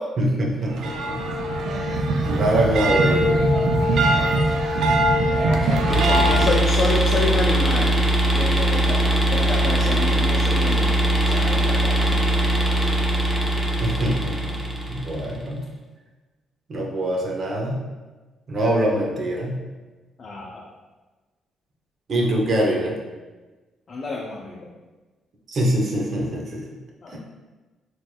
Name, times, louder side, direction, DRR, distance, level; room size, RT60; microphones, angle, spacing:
voice 1, 0.2-3.4 13.8-14.6 14.9-15.6 16.7-17.8 18.5-19.6 22.1-23.0 25.5-26.6 27.1-27.2, right 1 dB, 50° right, -1 dB, 0.8 m, -24 dB
sound 1, 0.6-6.5, right 1 dB, 75° right, 0.4 m, -21 dB
voice 2, 5.3-8.0 8.3-9.0 9.3-12.4 20.2-20.6 23.9-24.7 27.0-27.2, left 3 dB, 45° left, -3 dB, 0.5 m, -29 dB
sound 2, 5.9-15.4, right 1 dB, 5° right, 0.7 m, -21 dB
4.4 x 3.1 x 2.2 m, 1.2 s
cardioid pair, 90°, 0 cm